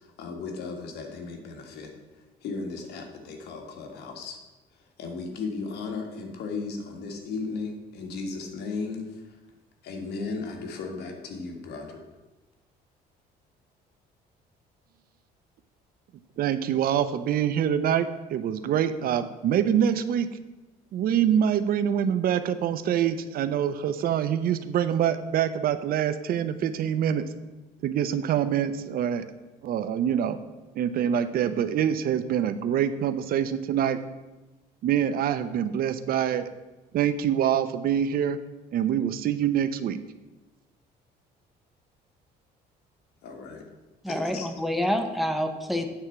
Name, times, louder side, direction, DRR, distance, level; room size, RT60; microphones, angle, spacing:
voice 1, 0.2-1.9 2.4-4.4 5.0-9.1 9.8-12.0 43.2-43.6 44.1-44.5, left 4 dB, 75° left, 1.7 m, -35 dB
voice 2, 16.4-20.3 20.9-27.3 27.8-29.2 29.6-30.4 30.8-34.0 34.8-36.5 36.9-38.4 38.7-40.0, right 9 dB, 60° right, 0.6 m, -25 dB
voice 3, 44.0-45.9, equal, ahead, 0.9 m, -27 dB
8.7 x 4.4 x 6.9 m
cardioid pair, 110°, 17 cm